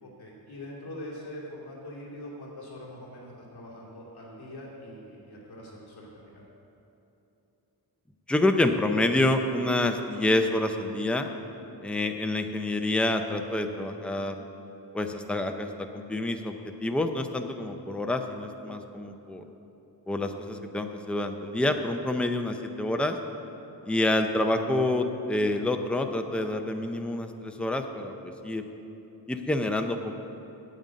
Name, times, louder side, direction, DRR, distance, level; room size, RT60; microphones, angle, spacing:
voice 1, 0.0-6.4, left 1 dB, 65° left, -4 dB, 2.6 m, -43 dB
voice 2, 8.3-11.3 11.8-14.3 14.9-15.7 15.9-16.5 16.8-19.4 20.1-23.2 23.9-28.6 29.3-30.2, left 1 dB, 5° left, 5 dB, 0.5 m, -27 dB
9.1 x 7.7 x 8.6 m, 3.0 s
wide cardioid pair, 175°, 41 cm